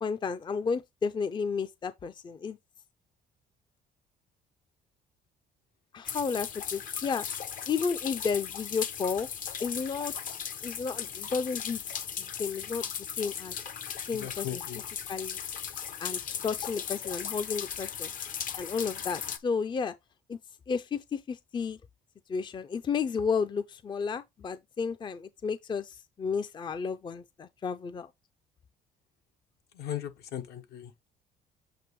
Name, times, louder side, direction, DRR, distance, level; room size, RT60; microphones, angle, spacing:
voice 1, 0.0-2.6 5.9-7.3 7.7-9.3 9.6-10.1 10.6-11.8 12.2-13.6 14.1-14.6 15.1-15.4 16.0-18.1 18.6-19.9 20.3-20.4 20.7-21.8 22.3-28.1, left 5 dB, 25° left, 0.5 m, -32 dB
sound 1, 6.0-19.4, left 8 dB, 55° left, 0.9 m, -37 dB
voice 2, 14.1-14.8 29.7-30.9, left 10 dB, 70° left, 1.4 m, -37 dB
7.8 x 2.6 x 4.6 m
cardioid pair, 110°, 17 cm